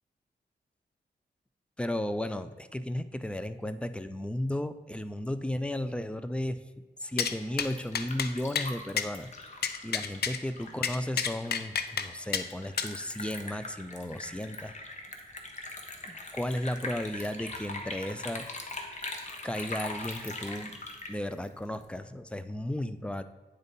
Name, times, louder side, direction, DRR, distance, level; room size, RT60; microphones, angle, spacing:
voice 1, 1.8-6.6 7.0-9.3 9.8-14.7 16.1-18.5 19.4-20.7 21.1-23.2, left 1 dB, 5° left, 11 dB, 0.4 m, -34 dB
sound 1, 7.2-7.3 7.6-7.7 7.9-8.3 8.6-8.7 9.0-9.1 9.6-10.4 10.8-12.1 12.3-12.4 12.8-12.9, left 7 dB, 65° left, 0.5 m, -29 dB
Liquid, 7.4-22.0, left 2 dB, 40° left, 1.1 m, -42 dB
9.2 x 4.1 x 5.2 m, 1.3 s
cardioid pair, 90°, 18 cm